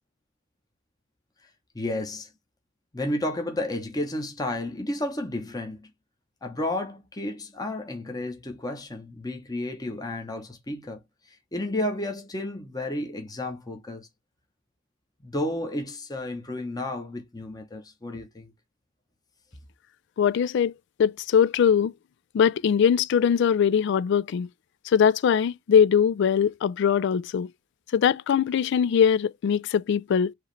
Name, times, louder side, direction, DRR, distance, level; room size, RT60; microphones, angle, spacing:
voice 1, 1.7-2.3 2.9-5.9 6.4-11.0 11.5-14.1 15.2-18.5, left 1 dB, 20° left, 0.9 m, -32 dB
voice 2, 20.2-20.7 21.0-21.9 22.3-24.5 24.9-27.5 27.9-30.3, left 7 dB, 60° left, 0.3 m, -21 dB
4.7 x 3.0 x 3.1 m
head